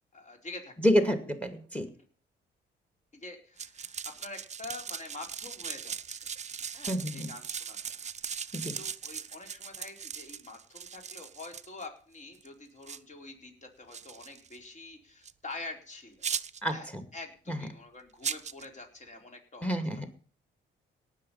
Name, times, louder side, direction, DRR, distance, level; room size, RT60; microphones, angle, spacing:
voice 1, 0.1-0.7 3.1-6.3 6.7-7.8 8.2-8.4 8.8-16.2 16.7-19.8, left 2 dB, 35° left, 3 dB, 4.4 m, -46 dB
voice 2, 0.8-1.9 6.9-7.3 8.5-8.8 16.6-17.0 17.5-17.7 19.6-20.1, equal, 5° left, 8 dB, 2.2 m, -28 dB
sound 1, 3.6-11.9 12.3-12.5 12.8-13.0 13.9-14.6 15.3-15.4 16.2-16.7 18.2-18.7, right 7 dB, 35° right, 0.7 m, -39 dB
18.0 x 6.6 x 5.7 m, 0.42 s
cardioid pair, 90°, 20 cm